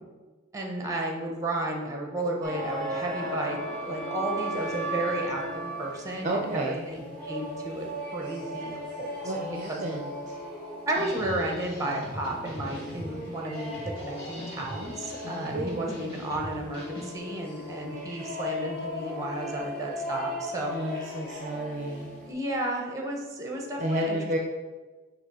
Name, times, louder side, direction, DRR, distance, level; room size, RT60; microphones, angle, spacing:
voice 1, 0.5-5.4 5.8-7.9 8.1-9.1 9.7-10.0 10.9-20.7 22.3-24.2, right 1 dB, 15° right, 0 dB, 1.0 m, -33 dB
sound 1, 2.4-22.3, equal, 5° left, 1.9 m, -37 dB
voice 2, 6.2-6.8 9.2-10.2 15.5-16.1 20.7-22.2 23.8-24.4, right 1 dB, 40° right, 1 dB, 0.5 m, -31 dB
sound 2, 10.9-17.2, equal, 55° left, 1.5 m, -41 dB
6.1 x 3.0 x 5.5 m, 1.4 s
head